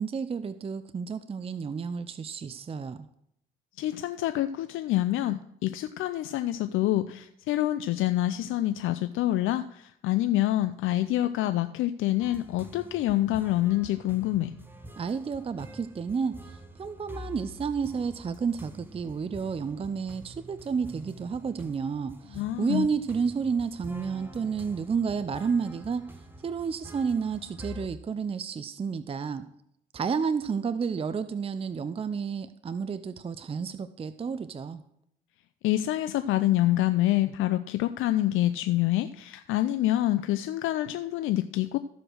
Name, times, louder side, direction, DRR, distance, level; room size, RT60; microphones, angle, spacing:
voice 1, 0.0-3.1 15.0-26.0 26.4-29.5 29.9-34.8, right 6 dB, 30° right, 12 dB, 0.5 m, -31 dB
voice 2, 3.8-14.5 22.3-22.9 35.6-41.8, left 14 dB, 85° left, 11 dB, 0.5 m, -26 dB
sound 1, 12.2-27.9, equal, 10° right, 1.2 m, -47 dB
14.0 x 5.0 x 6.3 m, 0.75 s
cardioid pair, 90°, 20 cm